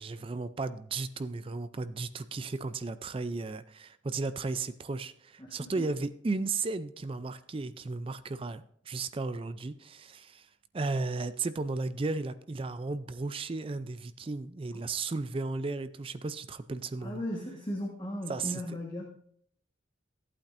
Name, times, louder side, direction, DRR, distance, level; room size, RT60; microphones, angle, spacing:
voice 1, 0.0-10.5 10.7-17.2 18.3-18.6, right 3 dB, 30° right, 13 dB, 0.4 m, -35 dB
voice 2, 5.4-5.8 17.0-19.0, equal, 25° left, -1 dB, 1.3 m, -37 dB
14.5 x 8.6 x 2.6 m, 0.65 s
head